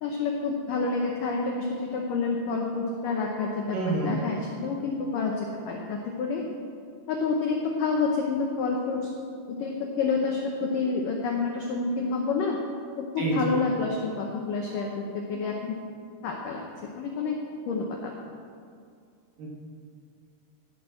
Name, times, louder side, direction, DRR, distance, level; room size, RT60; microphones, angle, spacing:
voice 1, 0.0-3.8 4.0-6.4 7.1-9.1 9.5-12.6 13.0-15.8 16.2-16.6 17.0-17.4 17.7-18.1, left 4 dB, 75° left, 0 dB, 1.9 m, -28 dB
voice 2, 3.7-4.2 13.2-13.6 19.4-19.5, right 3 dB, 55° right, -3 dB, 3.4 m, -27 dB
14.5 x 5.9 x 7.6 m, 2.3 s
omnidirectional pair, 5.1 m